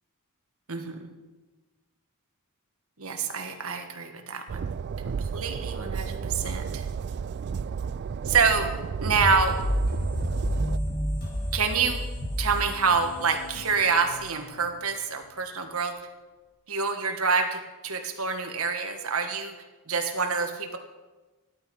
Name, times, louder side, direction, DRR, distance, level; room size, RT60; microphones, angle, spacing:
voice 1, 0.7-1.1 3.0-4.7 5.0-6.9 8.2-8.7 9.0-9.6 11.5-12.0 12.4-15.9 16.7-19.5 19.9-20.8, right 5 dB, 70° right, 5 dB, 1.7 m, -27 dB
Train, 4.5-10.8, right 6 dB, 50° right, 0.3 m, -32 dB
sound 1, 9.2-14.8, equal, 45° left, 5.1 m, -31 dB
14.5 x 11.5 x 5.5 m, 1.2 s
head